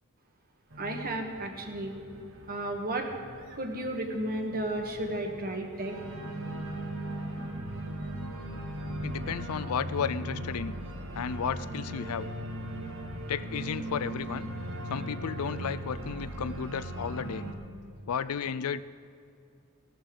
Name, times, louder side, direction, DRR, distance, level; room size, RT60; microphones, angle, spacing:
Organ, 0.7-17.5, right 1 dB, 65° right, 1.3 m, -39 dB
voice 1, 0.8-2.0 2.5-3.1 3.5-6.0, right 1 dB, 45° right, 2 dB, 1.5 m, -33 dB
voice 2, 9.0-10.7 11.1-12.3 13.3-14.5 14.9-17.4 18.1-18.8, left 7 dB, 85° left, 15 dB, 0.4 m, -33 dB
16.5 x 13.0 x 3.8 m, 2.4 s
head